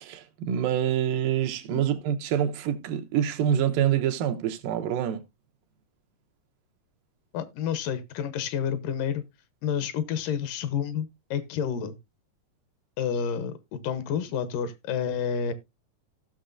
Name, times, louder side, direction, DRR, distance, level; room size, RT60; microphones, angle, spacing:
voice 1, 0.0-5.2, right 10 dB, 85° right, 2.6 m, -26 dB
voice 2, 7.3-9.2 9.6-11.9 13.0-15.5, left 8 dB, 80° left, 2.5 m, -29 dB
16.0 x 6.3 x 2.5 m
omnidirectional pair, 3.9 m